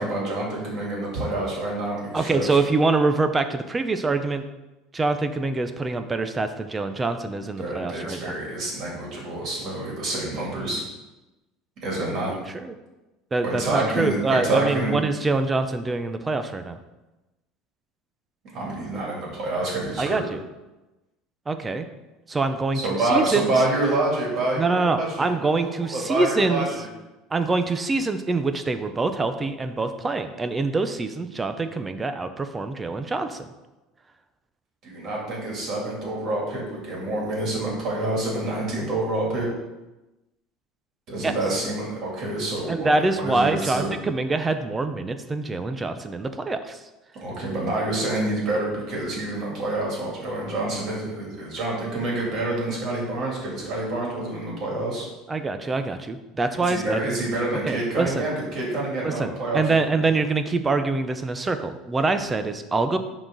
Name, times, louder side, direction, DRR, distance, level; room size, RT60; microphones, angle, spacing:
voice 1, 0.0-2.6 7.6-10.8 11.8-12.3 13.4-15.0 18.5-20.2 22.7-26.9 34.8-39.5 41.1-43.9 47.2-55.1 56.6-59.9, right 2 dB, 35° right, -3 dB, 2.8 m, -27 dB
voice 2, 2.1-4.4 4.9-8.4 12.3-12.7 13.3-16.8 20.0-20.4 21.5-21.9 22.3-22.8 23.1-23.5 24.6-26.7 27.3-33.5 41.2-41.3 42.7-46.8 55.3-57.0 57.7-58.3 59.0-63.0, right 3 dB, 15° right, 9 dB, 0.5 m, -25 dB
11.0 x 3.9 x 3.9 m, 1.0 s
cardioid pair, 160°, 0 cm